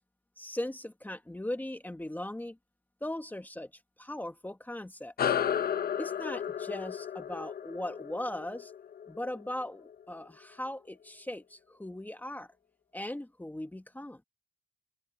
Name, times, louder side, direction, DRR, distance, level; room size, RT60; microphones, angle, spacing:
voice 1, 0.4-2.6 3.0-3.7 4.0-5.1 6.0-8.7 9.1-12.5 12.9-14.2, left 1 dB, 10° left, 2.0 m, -39 dB
sound 1, 5.2-10.0, left 9 dB, 50° left, 0.9 m, -33 dB
open air
cardioid pair, 90°, 20 cm